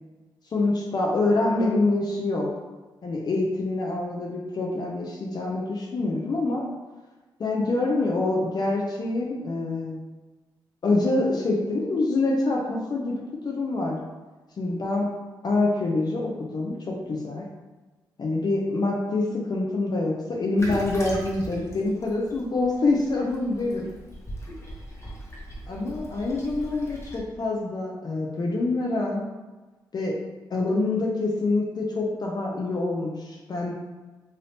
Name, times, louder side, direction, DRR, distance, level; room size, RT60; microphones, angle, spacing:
voice 1, 0.5-2.5 3.0-6.6 7.4-10.0 10.8-13.1 13.4-14.0 14.6-15.1 15.4-17.5 18.2-23.9 25.7-29.2 29.9-30.1 30.5-33.7, left 2 dB, 55° left, -2 dB, 0.6 m, -26 dB
Toilet flush, 20.6-27.2, equal, 35° left, 1.0 m, -39 dB
2.6 x 2.6 x 3.4 m, 1.2 s
cardioid pair, 60°, 8 cm